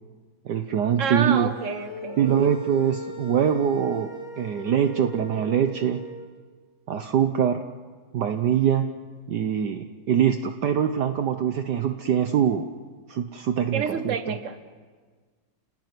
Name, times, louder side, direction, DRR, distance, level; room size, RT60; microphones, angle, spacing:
voice 1, 0.4-1.5 2.2-4.1 4.4-6.0 6.9-7.6 8.1-8.9 9.3-12.6 13.1-14.1, right 8 dB, 65° right, 7 dB, 1.5 m, -23 dB
voice 2, 1.0-2.3 13.7-14.6, right 6 dB, 40° right, 9 dB, 1.8 m, -28 dB
sound 1, 1.4-6.3, equal, 45° left, 2.8 m, -40 dB
29.0 x 18.5 x 9.6 m, 1.5 s
omnidirectional pair, 2.1 m